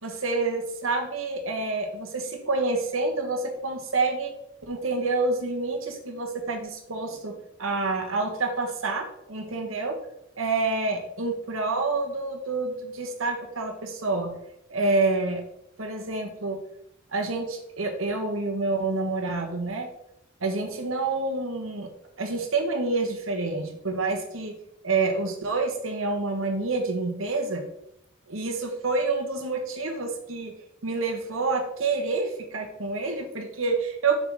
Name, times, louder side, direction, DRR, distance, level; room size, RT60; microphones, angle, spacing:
voice 1, 0.0-4.3 4.7-10.0 10.4-14.4 14.7-15.4 15.8-16.6 17.1-19.9 20.4-21.9 22.2-24.6 24.8-27.6 28.3-30.6 30.8-34.2, right 3 dB, 85° right, 3 dB, 1.5 m, -28 dB
7.5 x 5.9 x 3.7 m, 0.77 s
head